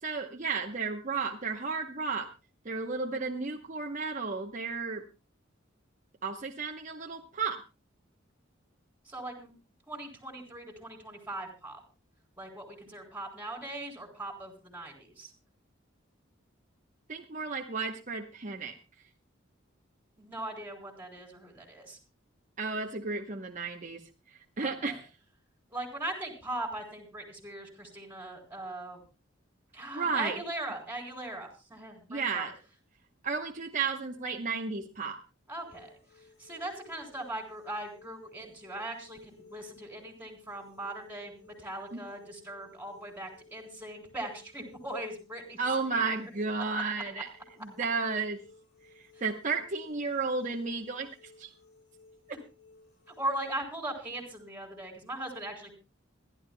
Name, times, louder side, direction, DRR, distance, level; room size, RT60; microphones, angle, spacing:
voice 1, 0.0-2.3 2.6-5.1 6.2-7.6 17.1-18.7 22.6-24.0 24.3-25.1 29.9-30.4 32.1-32.5 33.2-35.2 41.9-42.0 45.6-47.3 47.6-48.4 49.2-51.1 51.4-51.5, right 4 dB, 40° right, 1 dB, 0.9 m, -33 dB
voice 2, 9.1-9.5 9.9-11.8 12.4-15.3 20.2-22.0 24.6-25.0 25.7-29.0 29.7-32.5 35.5-45.6 49.1-49.2 53.2-55.7, right 1 dB, 10° right, 3 dB, 3.6 m, -40 dB
sound 1, 35.6-53.2, left 3 dB, 60° left, 5.0 m, -58 dB
26.5 x 11.5 x 2.2 m, 0.29 s
head